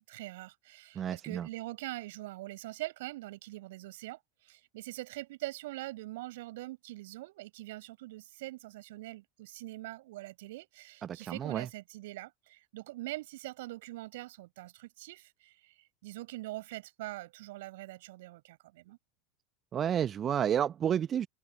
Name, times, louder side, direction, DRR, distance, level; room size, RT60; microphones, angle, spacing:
voice 1, 0.0-15.7 16.0-19.0, right 18 dB, 60° right, 7.1 m, -43 dB
voice 2, 1.0-1.5 11.0-11.7 19.7-21.3, right 9 dB, 30° right, 1.1 m, -31 dB
open air
figure-of-eight pair, 75°, 0 cm